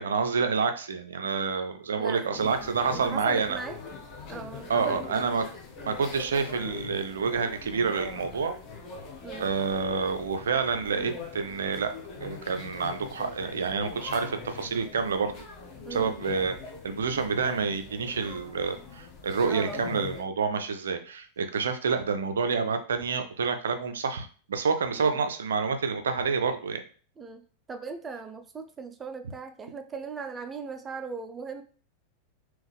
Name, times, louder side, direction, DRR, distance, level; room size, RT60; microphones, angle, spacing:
voice 1, 0.0-3.6 4.7-5.4 5.9-8.5 9.4-11.9 12.2-15.3 15.9-16.5 16.8-26.8, right 5 dB, 65° right, 8 dB, 0.5 m, -28 dB
voice 2, 2.0-3.8 4.3-5.2 9.2-9.5 15.8-16.1 19.5-19.8 25.0-25.2 27.2-31.6, right 4 dB, 20° right, 7 dB, 0.5 m, -39 dB
sound 1, 2.3-20.2, left 4 dB, 40° left, 0.8 m, -42 dB
3.5 x 3.0 x 3.4 m, 0.41 s
figure-of-eight pair, 90°, 0 cm